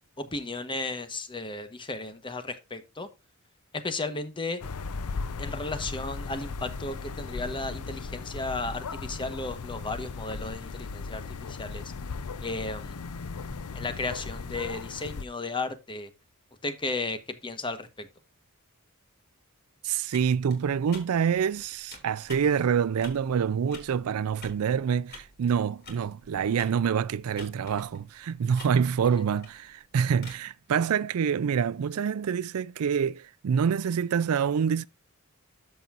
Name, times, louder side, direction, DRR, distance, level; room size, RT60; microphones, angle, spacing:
voice 1, 0.2-3.1 3.7-4.6 5.4-11.9 12.4-13.0 13.7-16.1 16.6-18.1, left 3 dB, 20° left, 1.1 m, -34 dB
sound 1, 4.6-15.2, left 4 dB, 85° left, 0.6 m, -37 dB
voice 2, 19.8-34.9, right 7 dB, 75° right, 0.4 m, -26 dB
sound 2, 20.1-30.4, left 3 dB, 50° left, 3.8 m, -50 dB
13.5 x 5.4 x 2.5 m
head